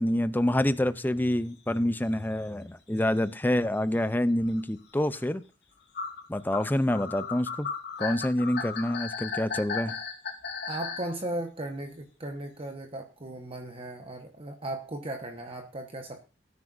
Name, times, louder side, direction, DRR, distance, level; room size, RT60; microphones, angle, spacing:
voice 1, 0.0-5.4 6.3-7.7 8.0-9.9, left 1 dB, 10° left, 0.5 m, -27 dB
sound 1, 2.0-2.1 2.4-2.6 3.4-3.5 3.6-3.8 4.4-4.6 5.1-5.2 5.9-11.1, left 5 dB, 60° left, 3.1 m, -35 dB
voice 2, 10.7-16.2, right 1 dB, 30° right, 1.2 m, -37 dB
18.5 x 9.6 x 2.6 m
head